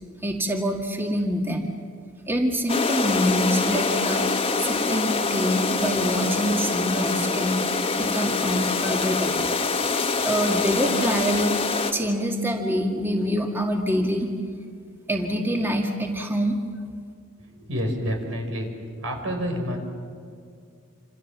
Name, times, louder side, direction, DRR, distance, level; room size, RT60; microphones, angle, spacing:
voice 1, 0.2-1.7 2.3-4.3 4.6-7.6 7.9-9.5 10.2-11.6 11.9-14.3 15.1-16.6, equal, 10° right, 1 dB, 2.0 m, -25 dB
sound 1, 2.7-11.9, left 4 dB, 30° left, 1.6 m, -25 dB
voice 2, 17.4-18.7 19.0-19.8, equal, 80° right, 3 dB, 5.4 m, -28 dB
27.5 x 27.5 x 7.4 m, 2.2 s
head